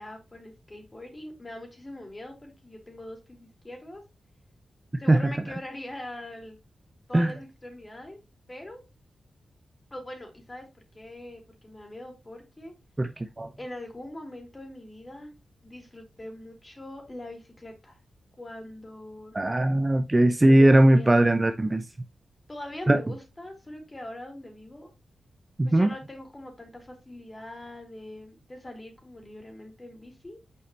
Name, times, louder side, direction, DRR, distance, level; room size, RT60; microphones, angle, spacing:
voice 1, 0.0-4.0 5.0-6.6 7.1-8.2 8.5-8.8 9.9-12.7 13.6-15.3 15.6-18.0 18.4-19.5 20.5-21.7 22.5-24.9 25.6-30.4, left 1 dB, 25° left, 3.1 m, -42 dB
voice 2, 13.0-13.5 19.3-21.8 22.9-23.0 25.6-25.9, right 1 dB, 25° right, 0.7 m, -19 dB
6.8 x 5.1 x 2.9 m
cardioid pair, 45°, 0 cm